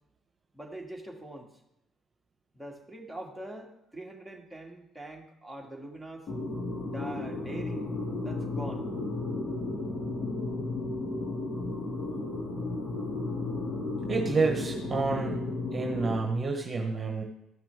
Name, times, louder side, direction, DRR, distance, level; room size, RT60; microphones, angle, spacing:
voice 1, 0.5-1.5 2.5-6.3 6.8-8.9, right 1 dB, 5° right, -1 dB, 2.1 m, -43 dB
sound 1, 6.3-16.2, left 2 dB, 50° left, 2.5 m, -33 dB
voice 2, 14.1-15.4 15.7-17.2, right 4 dB, 35° right, 3 dB, 1.3 m, -29 dB
14.0 x 5.9 x 3.5 m, 0.86 s
hypercardioid pair, 55°, 0 cm